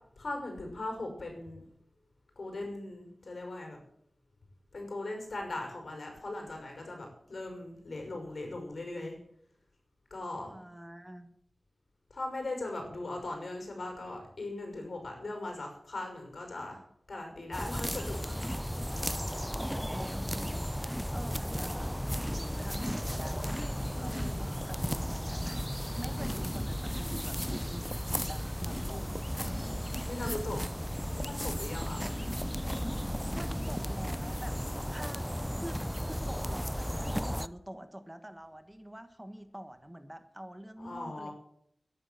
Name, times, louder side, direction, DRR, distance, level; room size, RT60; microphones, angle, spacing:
voice 1, 0.2-1.6 2.4-3.8 4.7-9.2 10.1-10.5 12.1-16.8 17.1-18.3 19.3-19.5 23.9-24.5 26.0-26.4 28.6-29.1 30.0-30.7 31.1-32.0 40.8-41.3, left 2 dB, 75° left, 3 dB, 5.9 m, -39 dB
voice 2, 10.5-11.3 19.6-29.7 30.2-30.4 31.9-32.4 33.3-34.6 34.9-35.3 35.6-41.3, right 1 dB, 15° right, 9 dB, 1.4 m, -46 dB
sound 1, 17.5-37.5, equal, 5° left, 0.5 m, -34 dB
13.0 x 11.0 x 7.7 m, 0.69 s
wide cardioid pair, 70°, 0 cm